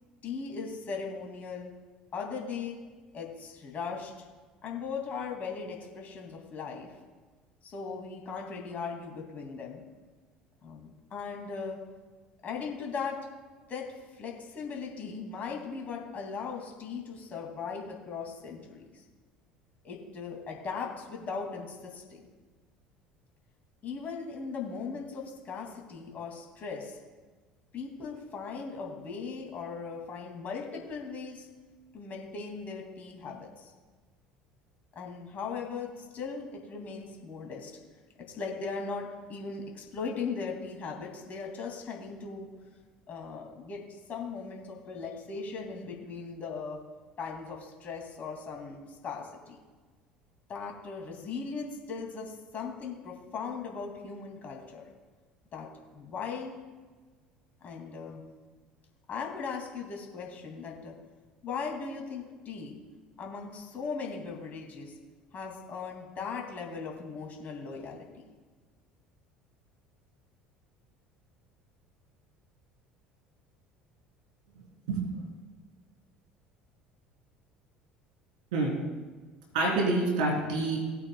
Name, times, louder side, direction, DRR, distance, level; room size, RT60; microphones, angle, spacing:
voice 1, 0.2-1.7 2.1-2.8 3.1-4.1 4.6-6.9 7.6-9.8 10.6-11.8 12.4-13.2 13.7-13.9 14.1-19.0 19.8-22.2 23.8-27.0 27.7-31.5 31.9-33.7 35.0-37.7 38.3-42.5 43.1-46.8 47.2-49.6 50.5-54.8 55.5-55.7 55.9-56.5 57.6-58.2 59.1-60.9 61.4-62.8 63.2-65.0 65.3-68.2, left 5 dB, 40° left, 0 dB, 2.4 m, -38 dB
voice 2, 79.5-80.8, right 2 dB, 70° right, -1 dB, 3.4 m, -27 dB
18.5 x 8.6 x 2.3 m, 1.3 s
hypercardioid pair, 65°, 4 cm